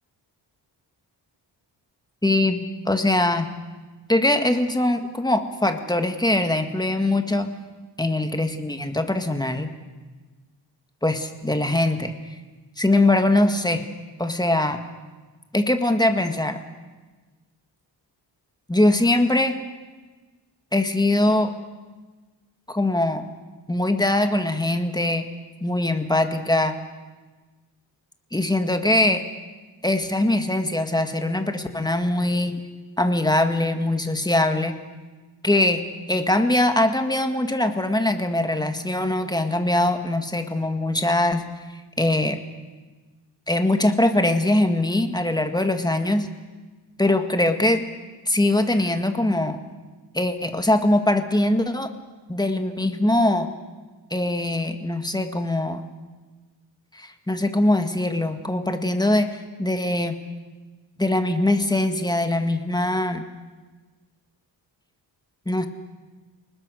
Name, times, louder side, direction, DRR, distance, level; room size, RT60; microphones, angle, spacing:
voice 1, 2.2-3.5 4.1-7.5 8.0-9.7 11.0-12.1 12.8-13.8 14.2-14.8 15.5-16.6 18.7-19.6 20.7-21.5 22.7-23.3 23.7-25.3 25.6-26.8 28.3-29.2 29.8-32.6 33.0-34.8 35.4-35.8 36.1-41.4 42.0-42.4 43.5-46.3 47.0-47.8 48.3-49.6 50.1-51.9 52.3-53.5 54.1-55.9 56.9-59.3 59.6-60.2 61.0-63.3 65.5-65.7, left 1 dB, 10° left, 6 dB, 1.9 m, -22 dB
30.0 x 20.0 x 6.4 m, 1.3 s
cardioid pair, 110°, 43 cm